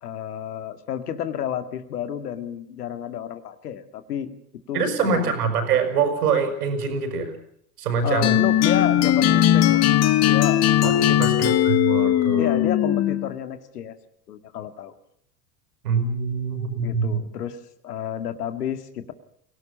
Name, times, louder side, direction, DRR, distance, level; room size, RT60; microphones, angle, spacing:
voice 1, 0.0-4.3 4.7-5.3 8.0-9.8 10.2-11.2 12.4-14.0 14.3-14.9 16.8-17.6 17.8-19.1, left 9 dB, 75° left, 10 dB, 2.2 m, -31 dB
voice 2, 4.7-7.3 7.8-8.4 10.8-10.9 11.2-12.5 15.8-17.2, right 5 dB, 70° right, 7 dB, 6.6 m, -24 dB
sound 1, 8.2-13.3, left 12 dB, 35° left, 1.3 m, -19 dB
24.5 x 17.5 x 7.3 m, 0.67 s
hypercardioid pair, 90°, 47 cm